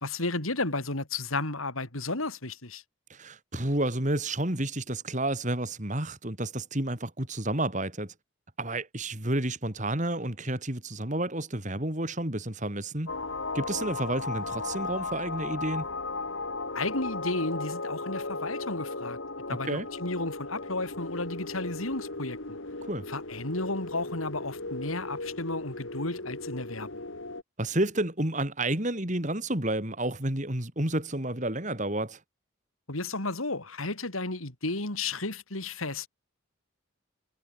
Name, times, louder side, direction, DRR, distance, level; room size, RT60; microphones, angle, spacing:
voice 1, 0.0-2.8 16.7-19.2 19.5-22.6 23.1-27.0 32.9-36.1, left 2 dB, 90° left, 4.5 m, -33 dB
voice 2, 3.1-8.1 8.6-13.1 13.5-15.9 19.5-19.9 22.9-23.0 27.6-32.2, right 1 dB, 35° right, 3.4 m, -30 dB
sound 1, 13.1-27.4, left 3 dB, 70° left, 3.0 m, -36 dB
head